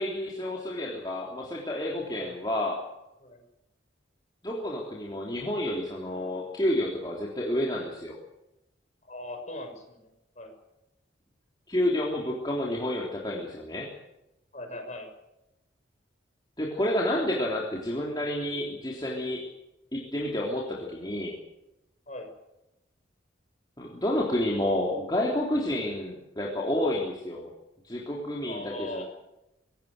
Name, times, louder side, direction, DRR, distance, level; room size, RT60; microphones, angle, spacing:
voice 1, 0.0-2.8 4.4-8.2 11.7-13.9 16.6-19.5 19.9-21.4 23.8-27.5 27.8-29.0, left 1 dB, 20° left, -3 dB, 3.4 m, -30 dB
voice 2, 9.1-10.1 10.4-10.5 14.5-15.1 22.1-22.3 28.5-29.0, left 1 dB, 40° left, 4 dB, 6.2 m, -39 dB
25.0 x 19.0 x 6.7 m, 0.90 s
head